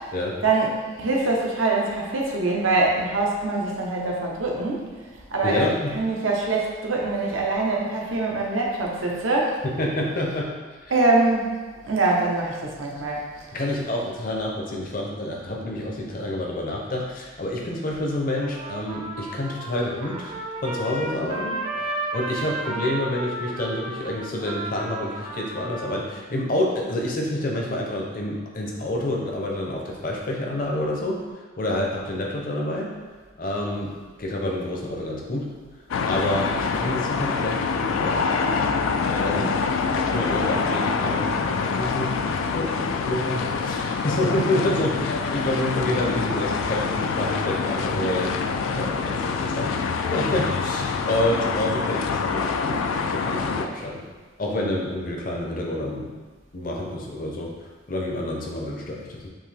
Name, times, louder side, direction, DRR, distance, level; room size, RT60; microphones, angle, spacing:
voice 1, 1.0-4.9 5.3-5.6 5.9-9.5 10.9-11.6 11.8-13.2 39.3-39.5, right 3 dB, 80° right, -2 dB, 0.8 m, -23 dB
voice 2, 5.4-6.0 9.6-10.5 10.8-10.9 13.5-20.3 20.6-31.2 31.6-32.9 33.4-35.5 36.0-38.5 39.0-48.3 48.6-54.0 54.4-56.1 56.5-57.5 57.9-59.3, left 1 dB, 45° left, -1 dB, 0.7 m, -28 dB
Trumpet, 18.4-26.0, right 2 dB, 30° right, 0.4 m, -33 dB
sound 1, 35.9-53.7, left 5 dB, 80° left, 0.3 m, -26 dB
5.4 x 2.7 x 3.3 m, 1.4 s
head